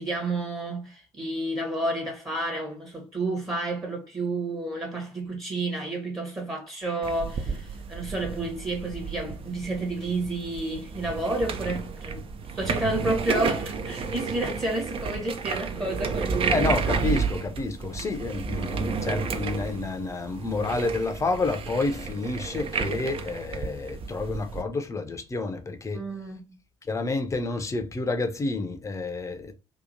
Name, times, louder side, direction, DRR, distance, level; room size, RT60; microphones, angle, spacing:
voice 1, 0.0-12.2 12.5-16.6 25.9-26.4, right 2 dB, 20° right, 1.0 m, -30 dB
sound 1, 7.0-24.6, right 5 dB, 35° right, 0.5 m, -32 dB
voice 2, 16.5-26.1 26.8-29.5, left 3 dB, 20° left, 0.6 m, -29 dB
2.8 x 2.4 x 2.6 m
figure-of-eight pair, 55°, 16 cm